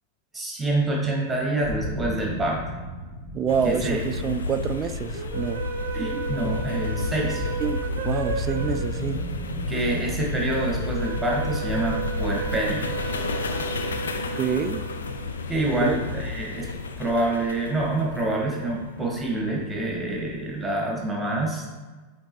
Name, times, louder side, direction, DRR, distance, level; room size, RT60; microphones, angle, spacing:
voice 1, 0.3-2.6 3.6-4.0 5.9-7.5 9.7-12.9 15.5-16.7 17.0-21.7, right 1 dB, 10° right, -2 dB, 1.6 m, -26 dB
sound 1, 1.6-6.6 8.2-13.9, equal, 40° left, 1.5 m, -37 dB
voice 2, 3.3-5.6 6.4-6.6 7.6-9.3 14.4-14.8 15.8-16.0, right 7 dB, 30° right, 10 dB, 0.3 m, -27 dB
sound 2, 3.5-20.7, left 3 dB, 75° left, 0.5 m, -32 dB
sound 3, 5.1-15.5, right 6 dB, 50° right, 0.7 m, -34 dB
8.6 x 3.6 x 3.0 m, 1.3 s
figure-of-eight pair, 90°, 0 cm